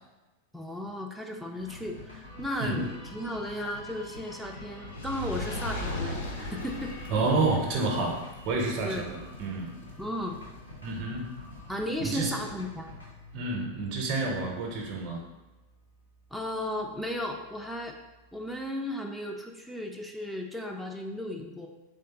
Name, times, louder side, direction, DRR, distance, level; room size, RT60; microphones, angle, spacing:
voice 1, 0.5-6.9 8.8-9.1 10.0-10.4 11.7-12.9 16.3-18.0 18.3-21.7, left 1 dB, ahead, 1 dB, 0.4 m, -35 dB
sound 1, 1.6-18.7, left 2 dB, 90° left, 1.2 m, -48 dB
Fire, 4.8-11.2 11.9-12.0, left 2 dB, 65° left, 0.7 m, -39 dB
voice 2, 7.1-9.7 10.8-11.3 12.0-12.4 13.3-15.2, right 3 dB, 35° right, 0 dB, 0.6 m, -29 dB
3.6 x 3.3 x 2.9 m, 1.1 s
figure-of-eight pair, 90°, 0 cm